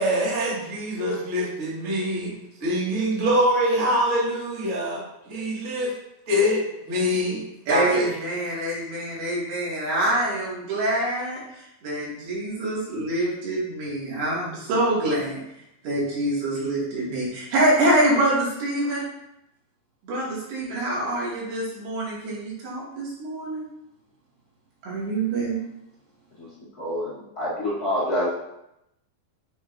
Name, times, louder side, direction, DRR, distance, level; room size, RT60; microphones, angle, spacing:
voice 1, 0.0-2.3 2.6-5.0 5.3-5.9 6.3-6.6 6.9-7.4 7.7-8.1, equal, 30° right, -6 dB, 1.7 m, -24 dB
voice 2, 7.7-11.4 11.8-15.4 15.8-19.0 20.0-23.6 24.8-25.6, right 1 dB, 75° right, -6 dB, 4.3 m, -25 dB
voice 3, 26.8-28.3, left 1 dB, 30° left, -9 dB, 2.0 m, -27 dB
8.0 x 7.1 x 2.7 m, 0.84 s
omnidirectional pair, 4.4 m